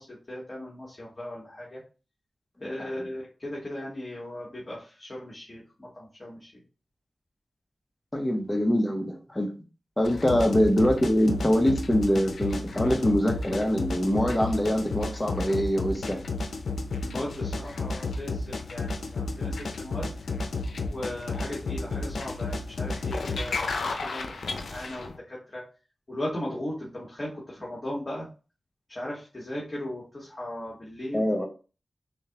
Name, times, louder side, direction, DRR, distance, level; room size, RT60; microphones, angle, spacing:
voice 1, 0.0-1.8 2.6-6.5 17.0-20.1 20.8-25.6 26.1-28.2 28.9-31.2, left 1 dB, 35° left, 1.7 m, -37 dB
voice 2, 8.1-9.5 10.0-16.2 31.1-31.4, equal, 20° left, 1.0 m, -24 dB
sound 1, 10.0-25.2, left 3 dB, 90° left, 0.5 m, -32 dB
6.4 x 2.4 x 2.9 m
cardioid pair, 55°, 0 cm